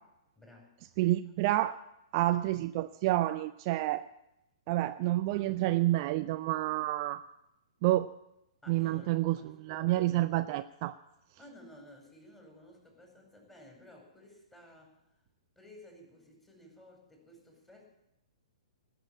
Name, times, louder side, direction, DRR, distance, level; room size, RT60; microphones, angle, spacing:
voice 1, 0.4-0.7 8.6-10.1 11.4-15.0 15.5-17.9, left 1 dB, 10° left, 0 dB, 5.0 m, -55 dB
voice 2, 1.0-1.8 2.1-4.0 4.7-7.2 7.8-8.1 8.7-9.4 9.7-10.9, right 16 dB, 40° right, 11 dB, 0.5 m, -29 dB
18.5 x 6.8 x 10.0 m, 0.87 s
figure-of-eight pair, 115°, 3 cm